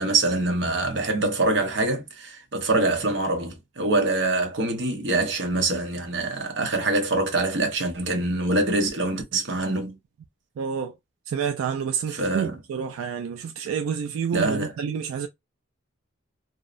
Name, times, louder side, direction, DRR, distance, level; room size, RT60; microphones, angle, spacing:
voice 1, 0.0-10.0 12.2-12.5 14.3-14.7, right 2 dB, 60° right, 0.8 m, -24 dB
voice 2, 10.6-10.9 11.3-15.3, right 7 dB, 85° right, 0.3 m, -29 dB
2.7 x 2.0 x 2.4 m
head